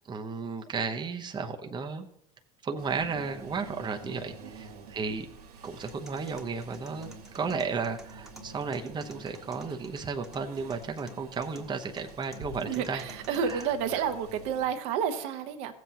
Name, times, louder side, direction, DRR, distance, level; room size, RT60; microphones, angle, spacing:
voice 1, 0.1-2.1 2.6-5.3 5.6-7.1 7.3-13.0 13.4-13.6 13.9-14.0, right 5 dB, 25° right, 4 dB, 0.9 m, -34 dB
sound 1, 2.8-14.7, right 3 dB, 80° right, 1.7 m, -48 dB
sound 2, 5.6-13.6, left 1 dB, ahead, 1.3 m, -54 dB
voice 2, 12.6-15.7, right 7 dB, 60° right, 6 dB, 1.1 m, -30 dB
16.0 x 7.7 x 2.8 m, 0.74 s
hypercardioid pair, 75°, 19 cm